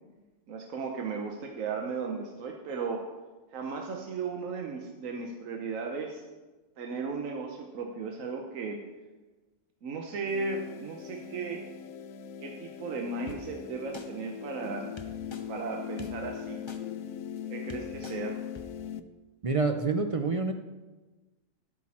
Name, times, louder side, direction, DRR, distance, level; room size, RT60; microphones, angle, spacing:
voice 1, 0.5-3.0 3.5-6.2 6.8-8.8 9.8-11.6 12.4-14.8 15.5-16.6 17.5-18.3, right 4 dB, 85° right, 2 dB, 1.3 m, -35 dB
sound 1, 10.3-19.0, left 9 dB, 90° left, 1.0 m, -40 dB
sound 2, 13.3-13.4 13.9-14.1 15.0-15.4 16.0-16.1 16.7-16.8 17.4-17.5 17.7-18.2 18.5-18.6, left 3 dB, 25° left, 0.7 m, -44 dB
voice 2, 19.4-20.5, right 4 dB, 60° right, 6 dB, 0.3 m, -27 dB
12.0 x 8.4 x 4.2 m, 1.2 s
omnidirectional pair, 1.3 m